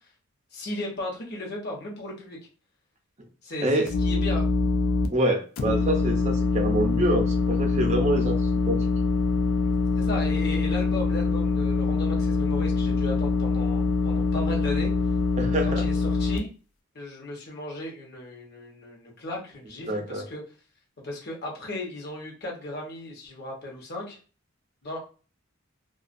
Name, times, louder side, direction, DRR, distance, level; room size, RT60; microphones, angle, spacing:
voice 1, 0.5-2.4 3.4-4.5 10.0-14.9 15.8-16.5 16.9-20.4 21.0-24.2 24.8-25.0, left 1 dB, 50° left, -1 dB, 0.9 m, -36 dB
sound 1, 3.9-5.1 5.6-16.4, left 4 dB, 70° left, 0.4 m, -24 dB
voice 2, 5.1-8.4 8.7-8.9 15.4-15.8 19.9-20.2, right 1 dB, 35° right, 3 dB, 0.6 m, -26 dB
2.3 x 2.3 x 2.5 m, 0.36 s
head